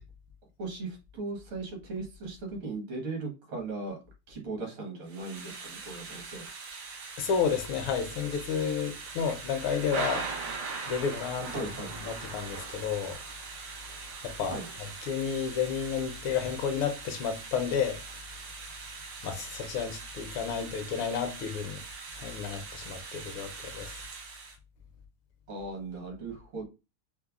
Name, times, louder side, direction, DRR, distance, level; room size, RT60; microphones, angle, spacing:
voice 1, 0.6-4.0 4.3-6.5 11.5-11.9 14.4-14.7 25.5-26.7, right 3 dB, 75° right, 2.2 m, -38 dB
Thunder / Rain, 5.1-24.6, right 4 dB, 90° right, 1.7 m, -41 dB
voice 2, 7.2-10.3 10.9-11.7 12.0-13.2 14.2-18.0 19.2-21.8 22.1-24.0, left 7 dB, 75° left, 1.5 m, -31 dB
5.4 x 2.0 x 2.3 m
omnidirectional pair, 2.4 m